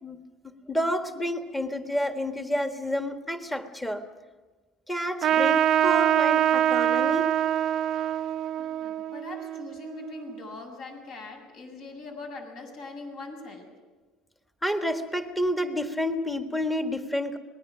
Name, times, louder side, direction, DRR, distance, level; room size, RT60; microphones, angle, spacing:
voice 1, 0.0-4.1 4.9-7.2 14.6-17.4, equal, 5° left, 6 dB, 1.6 m, -29 dB
Trumpet, 5.2-10.2, right 11 dB, 40° right, 0.6 m, -24 dB
voice 2, 8.6-13.7, left 3 dB, 55° left, 3 dB, 7.4 m, -41 dB
26.5 x 20.5 x 6.2 m, 1.3 s
cardioid pair, 145°, 0 cm